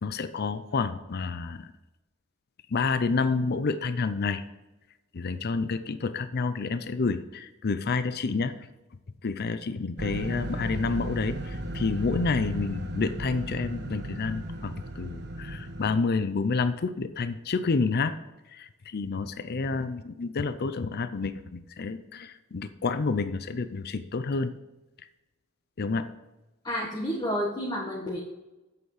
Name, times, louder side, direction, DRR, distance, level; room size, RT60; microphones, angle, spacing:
voice 1, 0.0-1.7 2.7-4.4 5.1-8.5 9.2-18.2 18.5-24.5 25.8-26.1, left 4 dB, 50° left, 12 dB, 0.5 m, -29 dB
sound 1, 10.0-16.0, right 1 dB, 50° right, 1.1 m, -35 dB
voice 2, 26.6-28.2, equal, 20° left, -3 dB, 1.5 m, -30 dB
8.1 x 8.0 x 4.9 m, 1.0 s
head